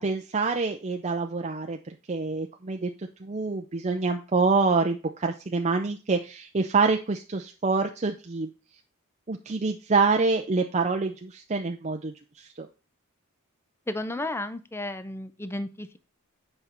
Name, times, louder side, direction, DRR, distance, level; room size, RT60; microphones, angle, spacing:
voice 1, 0.0-2.9 3.2-8.5 9.3-12.7, right 4 dB, 30° right, 3 dB, 0.6 m, -26 dB
voice 2, 13.9-16.0, left 1 dB, 10° left, 11 dB, 0.6 m, -33 dB
8.0 x 5.4 x 4.4 m, 0.32 s
head